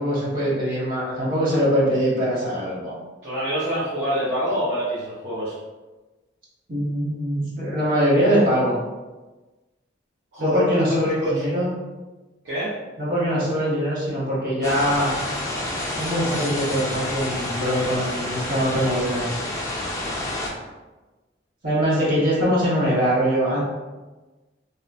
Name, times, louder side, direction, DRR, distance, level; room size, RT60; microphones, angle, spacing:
voice 1, 0.0-2.9 6.7-8.7 10.4-11.7 13.0-15.2 16.0-19.4 21.6-23.6, equal, 50° right, -7 dB, 1.0 m, -22 dB
voice 2, 3.2-5.6 10.3-11.4 12.4-12.7, equal, 85° right, -12 dB, 0.8 m, -25 dB
sound 1, 14.6-20.5, left 1 dB, 15° left, 0.4 m, -29 dB
2.9 x 2.0 x 2.5 m, 1.2 s
head